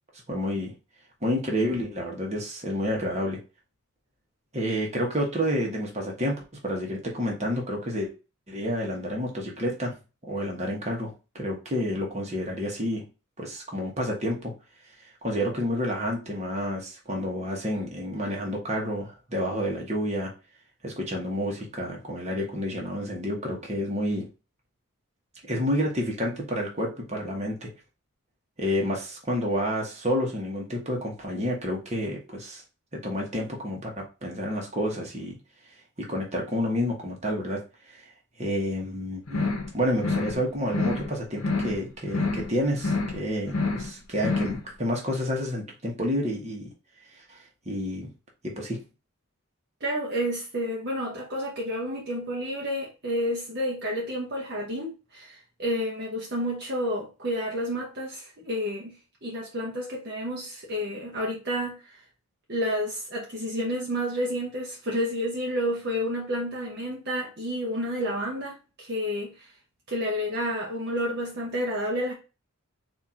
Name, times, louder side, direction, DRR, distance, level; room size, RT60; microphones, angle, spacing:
voice 1, 0.3-0.7 1.2-3.4 4.5-8.1 8.5-10.0 10.2-13.0 13.4-14.5 15.2-20.3 20.8-24.3 25.5-27.7 28.6-32.6 32.9-35.3 36.0-37.6 37.9-38.1 38.4-46.7 47.2-48.1 48.4-48.8, equal, 30° right, 1.3 m, -29 dB
sound 1, 39.3-39.7 40.0-40.4 40.7-41.1 41.4-41.8 42.1-42.5 42.8-43.2 43.5-43.9 44.2-44.6, left 3 dB, 70° left, 0.9 m, -28 dB
voice 2, 49.8-62.0 62.5-69.5 69.9-72.1, equal, 45° right, 1.0 m, -30 dB
4.4 x 2.8 x 3.7 m
head